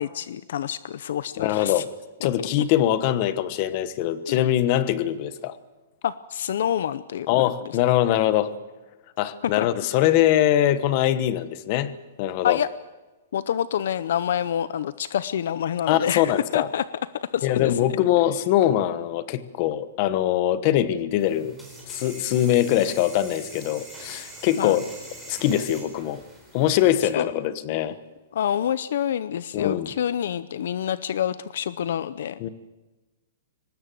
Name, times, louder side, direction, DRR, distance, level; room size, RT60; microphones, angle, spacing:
voice 1, 0.0-1.8 2.4-2.5 4.3-4.5 6.0-7.5 9.4-9.7 12.4-12.7 13.3-16.8 17.1-17.7 24.6-24.8 27.0-27.3 28.3-32.4, left 9 dB, 60° left, 16 dB, 0.7 m, -27 dB
voice 2, 1.4-1.9 2.2-5.5 7.3-8.5 9.2-11.9 12.2-12.6 15.9-16.7 17.4-21.6 21.9-24.8 25.3-26.2 26.5-28.0 29.5-29.9 32.4-32.5, left 12 dB, 30° left, 15 dB, 1.1 m, -22 dB
sound 1, 21.2-27.1, right 1 dB, ahead, 4.5 m, -43 dB
23.5 x 19.5 x 7.7 m, 1.1 s
hypercardioid pair, 175°, 0 cm